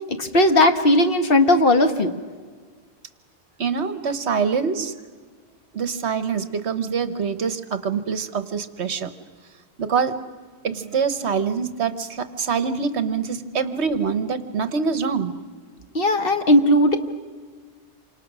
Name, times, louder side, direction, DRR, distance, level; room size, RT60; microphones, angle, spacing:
voice 1, 0.1-2.1 15.9-17.0, left 1 dB, 50° left, 7 dB, 1.5 m, -17 dB
voice 2, 3.6-4.9 5.7-9.1 9.8-10.1 10.6-15.3, right 6 dB, 65° right, 11 dB, 1.3 m, -25 dB
28.0 x 25.5 x 6.1 m, 1.5 s
omnidirectional pair, 1.3 m